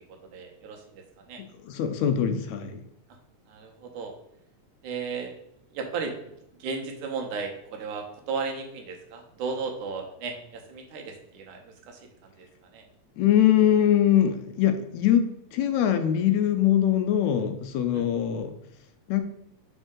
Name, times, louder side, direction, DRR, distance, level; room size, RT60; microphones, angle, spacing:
voice 1, 0.3-1.0 1.3-1.4 3.5-4.1 4.8-5.3 5.7-6.2 6.6-12.5 12.7-12.8 17.9-18.1, right 5 dB, 80° right, 2 dB, 2.4 m, -35 dB
voice 2, 1.4-2.8 13.2-18.6 19.1-19.2, left 10 dB, 80° left, 8 dB, 1.8 m, -23 dB
5.3 x 5.2 x 3.7 m, 0.76 s
omnidirectional pair, 3.5 m